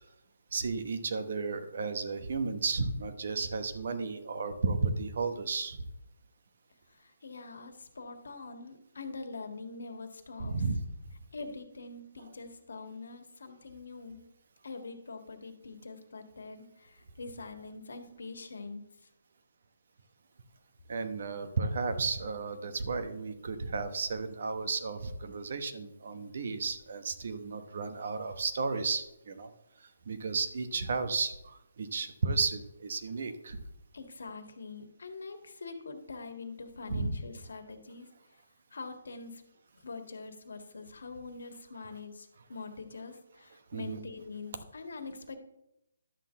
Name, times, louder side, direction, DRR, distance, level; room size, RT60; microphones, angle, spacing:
voice 1, 0.5-5.8 10.4-10.8 20.9-29.5 30.1-33.6 36.9-37.1 43.7-44.0, right 4 dB, 50° right, 9 dB, 1.0 m, -33 dB
voice 2, 6.9-10.6 11.3-14.2 14.6-19.1 33.9-38.1 38.7-39.4 39.7-45.4, left 3 dB, 75° left, 6 dB, 1.6 m, -44 dB
11.5 x 3.8 x 7.4 m, 0.87 s
hypercardioid pair, 175°, 0 cm